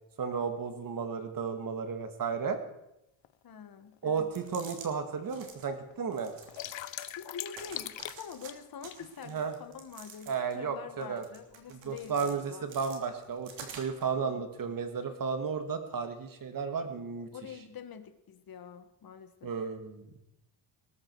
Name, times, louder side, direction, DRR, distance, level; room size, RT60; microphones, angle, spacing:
voice 1, 0.2-2.6 4.0-6.3 9.2-9.5 10.3-11.2 11.7-17.3 19.4-20.1, right 6 dB, 45° right, 7 dB, 2.1 m, -33 dB
sound 1, 3.2-3.3 4.1-4.2 4.6-4.7 4.9-5.5 5.9-9.0, left 13 dB, 70° left, 0.9 m, -40 dB
voice 2, 3.4-4.3 7.1-12.7 14.1-14.4 17.3-19.5, left 7 dB, 50° left, 9 dB, 1.5 m, -46 dB
sound 2, 4.2-4.9 5.2-5.7 6.1-7.2 7.5-8.5 8.8-10.6 11.0-12.3 12.7-14.1, right 5 dB, 70° right, 3.2 m, -49 dB
20.0 x 12.5 x 4.7 m, 0.87 s
cardioid pair, 145°, 47 cm